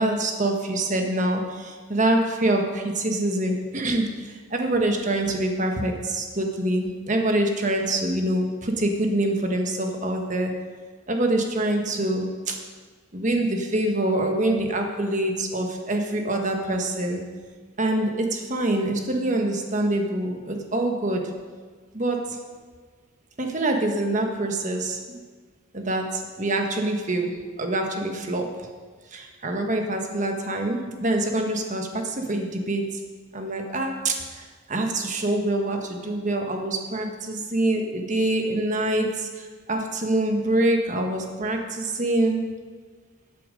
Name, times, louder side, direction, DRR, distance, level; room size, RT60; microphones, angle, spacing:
voice 1, 0.0-4.1 4.5-10.5 11.1-12.6 13.1-17.2 17.8-21.2 21.9-22.2 23.4-25.0 25.7-26.1 26.4-27.3 27.6-28.5 29.1-32.8 33.3-34.2 34.7-39.3 39.7-42.4, right 1 dB, 40° right, 3 dB, 1.4 m, -25 dB
13.0 x 8.6 x 5.3 m, 1.5 s
head